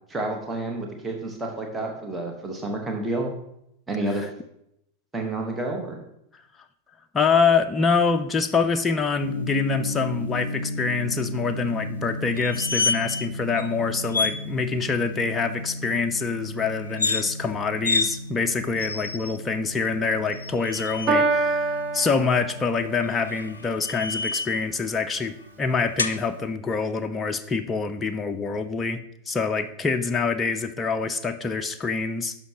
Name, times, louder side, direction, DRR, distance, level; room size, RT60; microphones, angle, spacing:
voice 1, 0.1-3.3 3.9-4.3 5.1-6.0, right 2 dB, 10° right, 1 dB, 1.3 m, -29 dB
voice 2, 7.1-32.4, left 4 dB, 15° left, 9 dB, 0.5 m, -25 dB
Gong, 9.2-26.5, left 1 dB, 70° right, 1.1 m, -35 dB
sound 1, 12.4-13.3 13.6-13.7 14.1-14.4 16.9-17.2 17.8-18.1 18.8-19.4 20.3-21.1 23.0-24.6 26.0-26.2, left 4 dB, 75° left, 0.5 m, -28 dB
Piano, 21.1-23.0, right 3 dB, 30° right, 1.3 m, -25 dB
11.0 x 6.1 x 3.0 m, 0.78 s
figure-of-eight pair, 90°, 0 cm